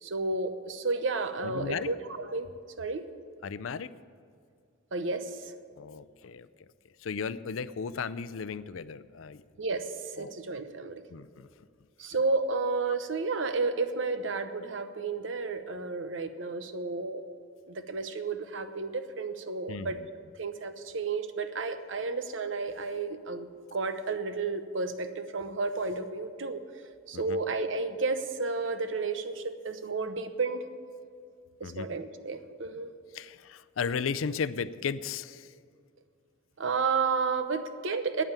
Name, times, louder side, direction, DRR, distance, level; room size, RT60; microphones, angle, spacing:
voice 1, 0.0-2.5 2.8-3.1 4.9-5.5 9.6-11.0 12.0-17.2 17.7-20.0 20.4-26.6 27.1-30.6 31.6-32.9 36.6-38.2, right 4 dB, 70° right, 10 dB, 0.8 m, -32 dB
voice 2, 1.4-1.9 3.4-3.9 5.8-6.5 7.0-9.4 10.2-10.3 11.1-11.5 19.7-20.0 27.1-27.4 31.6-31.9 33.1-35.5, left 6 dB, 85° left, 16 dB, 0.5 m, -35 dB
9.4 x 9.0 x 8.9 m, 2.4 s
head